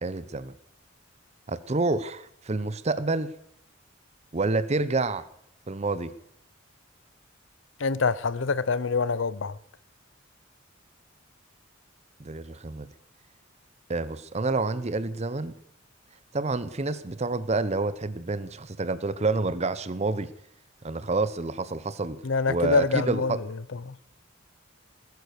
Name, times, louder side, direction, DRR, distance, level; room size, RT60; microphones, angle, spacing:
voice 1, 0.0-0.5 1.5-3.3 4.3-5.2 5.7-6.1 12.2-12.9 13.9-15.5 16.3-20.3 20.8-22.2 22.5-23.4, right 3 dB, 35° right, 0.7 m, -28 dB
voice 2, 7.8-9.6 22.2-23.3 23.9-24.0, left 4 dB, 65° left, 0.6 m, -25 dB
19.5 x 9.5 x 6.6 m
head